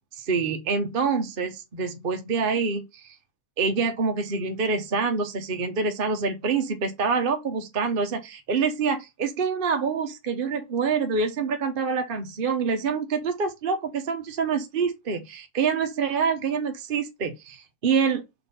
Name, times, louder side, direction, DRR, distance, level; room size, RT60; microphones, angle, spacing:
voice 1, 0.2-3.1 3.6-18.2, right 5 dB, 40° right, 1.0 m, -26 dB
4.5 x 3.9 x 5.5 m
omnidirectional pair, 1.7 m